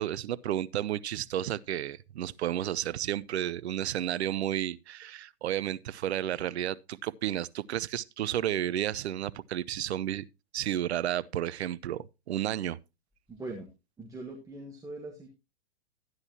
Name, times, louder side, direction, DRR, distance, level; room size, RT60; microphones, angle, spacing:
voice 1, 0.0-10.2 10.5-12.8, right 11 dB, 75° right, 0.6 m, -32 dB
voice 2, 13.3-13.7 14.0-15.3, right 2 dB, 10° right, 1.4 m, -41 dB
12.5 x 9.6 x 2.9 m
hypercardioid pair, 125°, 33 cm